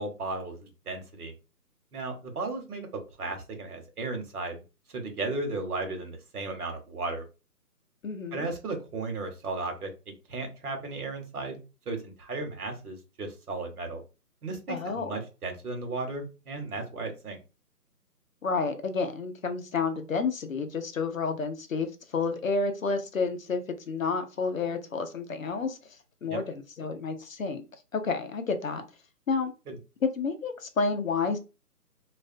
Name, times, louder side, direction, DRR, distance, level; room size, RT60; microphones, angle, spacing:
voice 1, 0.0-1.3 1.9-2.9 3.2-4.6 4.9-7.2 8.3-9.9 10.3-11.6 11.9-14.0 14.4-17.4 26.3-26.4 29.7-29.8, right 3 dB, 65° right, 4 dB, 1.0 m, -35 dB
voice 2, 8.0-8.5 14.7-15.2 18.4-25.8 26.2-27.6 27.9-28.8 29.3-29.5 30.0-31.4, left 4 dB, 60° left, 7 dB, 0.5 m, -30 dB
2.3 x 2.1 x 2.5 m, 0.30 s
hypercardioid pair, 165°, 48 cm